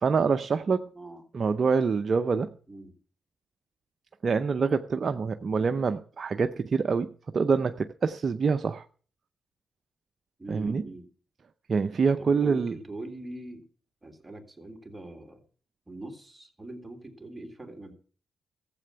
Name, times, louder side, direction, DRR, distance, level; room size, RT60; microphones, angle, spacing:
voice 1, 0.0-0.9 1.3-2.5 4.2-8.8 10.5-10.8 11.7-12.8, right 5 dB, 50° right, 9 dB, 0.6 m, -26 dB
voice 2, 10.4-11.1 12.2-13.7 14.0-15.4 15.9-17.9, right 2 dB, 15° right, 4 dB, 3.3 m, -42 dB
14.0 x 7.7 x 6.8 m, 0.42 s
supercardioid pair, 50°, 0 cm